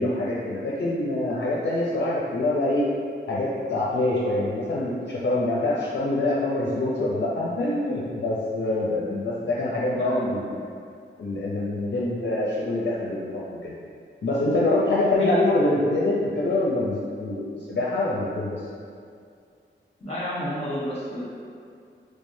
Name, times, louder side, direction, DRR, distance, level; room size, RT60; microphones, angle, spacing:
voice 1, 0.0-2.8 3.3-10.5 11.2-13.7 14.2-18.6, left 2 dB, 65° left, -6 dB, 0.5 m, -25 dB
voice 2, 20.0-21.3, equal, 30° left, -7 dB, 1.1 m, -30 dB
3.5 x 3.2 x 2.7 m, 2.3 s
wide cardioid pair, 95°, 20 cm